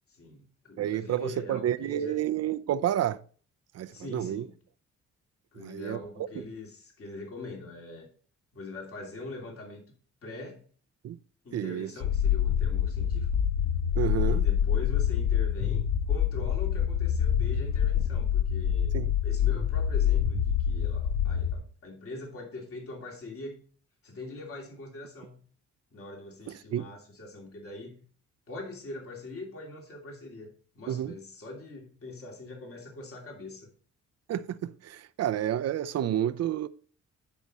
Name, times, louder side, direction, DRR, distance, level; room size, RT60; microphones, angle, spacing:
voice 1, 0.2-2.2 3.9-4.5 5.5-8.1 8.5-9.8 10.2-10.6 11.4-13.3 14.2-18.9 19.2-23.6 24.0-25.4 25.9-28.0 28.5-30.5 30.7-33.7, left 2 dB, 45° left, 2.9 m, -42 dB
voice 2, 0.8-3.2 3.7-4.5 5.6-6.0 11.0-11.2 11.5-11.9 14.0-14.5 18.9-19.1 26.7-26.9 30.9-31.1 34.3-36.7, right 11 dB, 55° right, 0.6 m, -30 dB
sound 1, 12.0-21.5, left 9 dB, 75° left, 1.2 m, -26 dB
11.0 x 5.0 x 4.2 m
cardioid pair, 90°, 30 cm